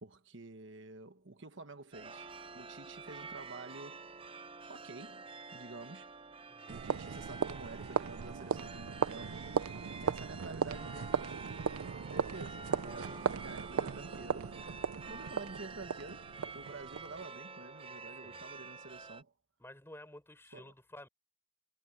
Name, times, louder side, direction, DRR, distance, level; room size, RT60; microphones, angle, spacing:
voice 1, 0.0-4.0 4.7-6.1 6.7-14.5 15.0-19.3 20.5-20.7, right 3 dB, 60° right, 1.3 m, -50 dB
sound 1, 1.9-19.2, right 4 dB, 25° right, 0.7 m, -48 dB
voice 2, 6.5-6.8 9.2-9.4 13.1-13.4 15.1-15.3 18.2-18.4 19.6-21.1, left 1 dB, 10° left, 4.7 m, -54 dB
sound 2, 6.7-17.2, right 6 dB, 90° right, 0.5 m, -37 dB
head